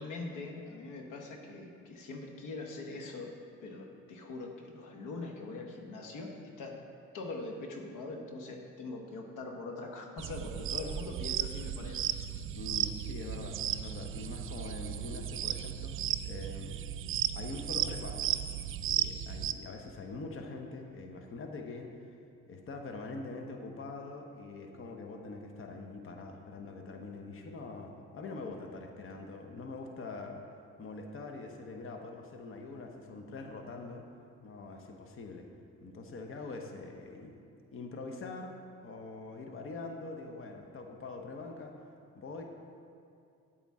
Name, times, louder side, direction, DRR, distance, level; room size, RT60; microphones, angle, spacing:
voice 1, 0.0-3.3 3.6-6.8 7.1-12.1, left 3 dB, 85° left, 2 dB, 1.0 m, -42 dB
sound 1, 10.2-19.5, right 10 dB, 45° right, 0.4 m, -35 dB
voice 2, 12.5-15.9 16.2-16.7 17.3-18.3 18.8-21.9 22.5-30.4 30.8-34.0 34.4-35.5 35.8-37.3 37.7-38.5 38.8-41.7 42.1-42.4, left 3 dB, 45° left, 3 dB, 0.9 m, -43 dB
8.9 x 8.4 x 3.6 m, 2.5 s
cardioid pair, 90°, 30 cm